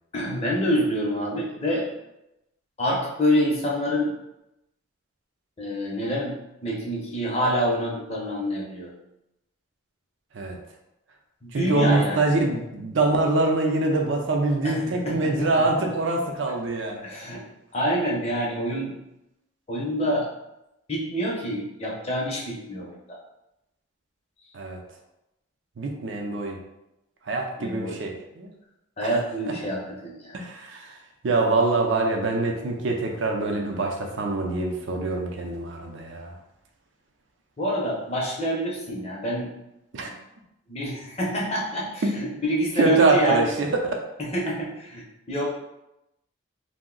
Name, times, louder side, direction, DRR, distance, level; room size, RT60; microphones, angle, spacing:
voice 1, 0.1-1.9 2.8-4.1 5.6-6.4 6.6-8.9 11.4-12.2 14.6-15.7 17.0-17.4 17.7-18.9 19.7-20.3 20.9-23.2 27.6-28.0 29.0-30.4 37.6-39.5 40.0-40.1 40.7-43.5 44.2-45.5, equal, 30° left, -3 dB, 0.6 m, -26 dB
voice 2, 11.5-17.0 24.5-24.8 25.8-26.6 27.3-28.5 29.0-29.1 30.3-30.9 31.2-36.3 39.9-40.1 42.0-42.2 42.8-44.0, right 2 dB, 65° right, 2 dB, 0.5 m, -24 dB
2.6 x 2.0 x 3.7 m, 0.89 s
head